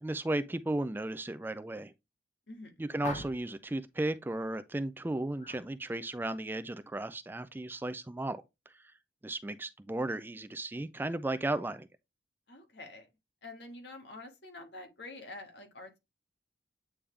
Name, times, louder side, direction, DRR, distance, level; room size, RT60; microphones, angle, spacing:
voice 1, 0.0-1.9 2.8-8.4 9.2-11.9, right 2 dB, 10° right, 0.3 m, -35 dB
voice 2, 2.5-2.8 12.5-13.1 13.4-16.0, left 2 dB, 65° left, 1.7 m, -47 dB
sound 1, 3.0-3.6 5.4-5.7 6.0-6.4, left 2 dB, 40° left, 0.9 m, -43 dB
8.6 x 3.4 x 3.3 m
head